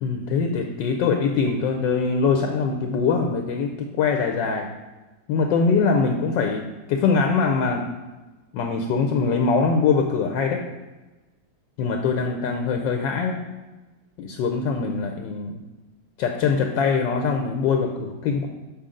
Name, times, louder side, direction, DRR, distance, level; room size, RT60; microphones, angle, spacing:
voice 1, 0.0-4.7 5.3-7.9 8.5-10.6 11.8-13.4 14.2-15.6 16.2-18.5, left 5 dB, 75° left, 3 dB, 1.3 m, -23 dB
7.0 x 5.1 x 3.7 m, 1.2 s
omnidirectional pair, 2.1 m